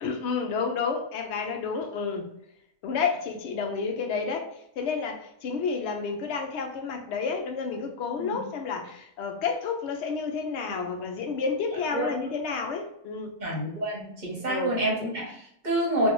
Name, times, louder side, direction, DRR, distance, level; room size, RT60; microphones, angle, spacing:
voice 1, 0.0-2.3 2.8-4.5 4.8-13.3 14.5-14.8, left 5 dB, 75° left, 3 dB, 0.6 m, -30 dB
voice 2, 13.4-16.1, right 1 dB, 35° right, -3 dB, 0.9 m, -28 dB
3.3 x 2.2 x 3.0 m, 0.75 s
omnidirectional pair, 1.7 m